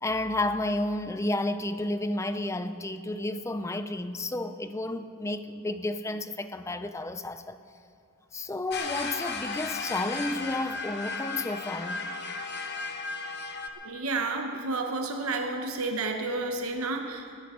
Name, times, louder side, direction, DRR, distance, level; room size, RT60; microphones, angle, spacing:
voice 1, 0.0-7.6 8.3-12.0, left 2 dB, 15° left, 0.4 m, -31 dB
sound 1, 8.7-13.7, left 4 dB, 50° left, 1.1 m, -35 dB
voice 2, 13.8-17.4, right 3 dB, 85° right, 0.9 m, -31 dB
19.5 x 16.0 x 3.7 m
head